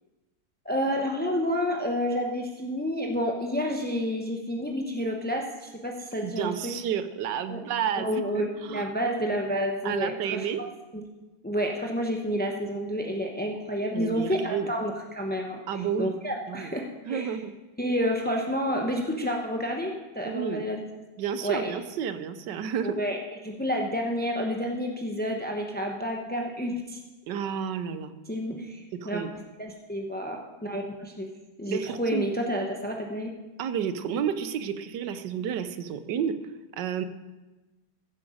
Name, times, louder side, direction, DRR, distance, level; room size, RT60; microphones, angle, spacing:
voice 1, 0.6-6.7 7.5-7.6 8.0-10.5 10.9-11.0 11.4-15.6 16.0-17.4 17.8-20.8 21.4-21.7 22.8-27.0 28.3-29.2 29.6-31.3 31.6-33.3, equal, 15° left, 1 dB, 0.4 m, -29 dB
voice 2, 6.2-8.9 9.8-10.6 13.9-14.7 15.7-16.1 16.5-16.7 17.1-17.5 20.2-20.6 21.2-23.0 27.3-28.1 28.9-29.3 31.7-32.3 33.6-36.4 36.8-37.0, right 8 dB, 85° right, 11 dB, 1.4 m, -31 dB
14.5 x 7.9 x 5.0 m, 1.1 s
omnidirectional pair, 1.9 m